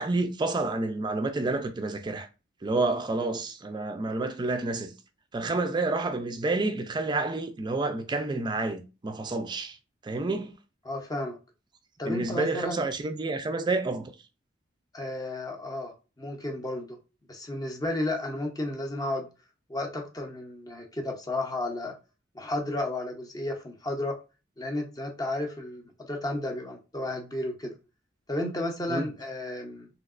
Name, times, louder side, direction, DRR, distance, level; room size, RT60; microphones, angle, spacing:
voice 1, 0.0-2.3 2.6-4.9 5.3-9.8 10.0-10.5 12.1-14.1 28.9-29.1, right 2 dB, 25° right, 0.4 m, -29 dB
voice 2, 10.8-11.4 12.0-12.8 14.9-17.0 17.3-19.3 19.7-21.9 22.3-24.2 24.6-27.8 28.3-29.9, left 1 dB, 20° left, 0.6 m, -33 dB
3.1 x 2.8 x 2.4 m
head